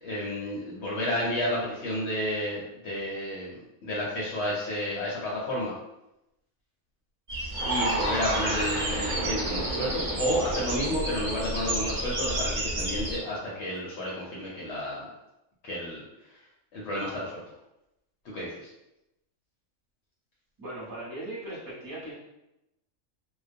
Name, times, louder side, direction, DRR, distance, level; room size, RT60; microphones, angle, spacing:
voice 1, 0.0-5.7 7.7-15.1 15.6-16.0 16.3-16.4 16.7-17.4 18.2-18.6, left 1 dB, 65° left, -5 dB, 0.7 m, -31 dB
sound 1, 7.3-13.2, right 1 dB, 65° right, 0.4 m, -32 dB
sound 2, 7.5-13.8, right 2 dB, 80° right, 1.0 m, -34 dB
voice 2, 20.6-22.1, right 1 dB, 20° right, -8 dB, 0.8 m, -38 dB
2.3 x 2.2 x 2.5 m, 0.90 s
omnidirectional pair, 1.5 m